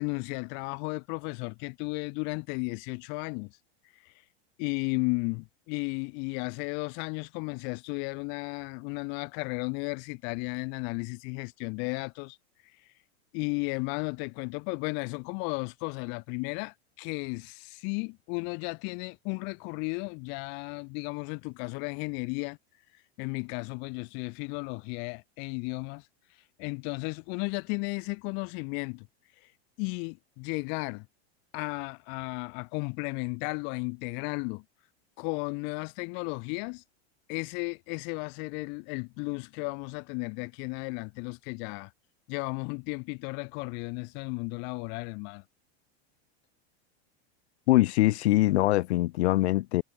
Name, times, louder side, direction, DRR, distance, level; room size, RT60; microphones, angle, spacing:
voice 1, 0.0-3.5 4.0-4.1 4.6-12.4 13.3-22.6 23.2-26.1 26.6-29.1 29.4-29.5 29.8-31.1 31.5-34.6 35.2-36.8 37.3-41.9 42.3-45.4, left 37 dB, 35° left, 0.7 m, -34 dB
voice 2, 47.7-49.8, left 17 dB, 85° left, 1.1 m, -23 dB
supercardioid pair, 170°, 32 cm